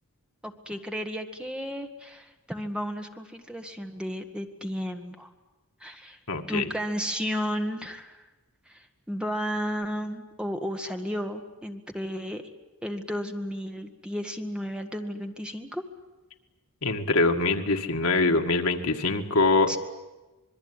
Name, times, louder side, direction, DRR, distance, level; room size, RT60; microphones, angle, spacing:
voice 1, 0.4-5.3 5.8-6.2 6.5-8.2 8.7-12.4 12.8-15.8 19.7-19.8, equal, 5° right, 5 dB, 1.6 m, -33 dB
voice 2, 6.3-6.6 16.8-19.8, left 3 dB, 75° left, 5 dB, 1.9 m, -24 dB
26.0 x 21.5 x 9.8 m, 1.1 s
head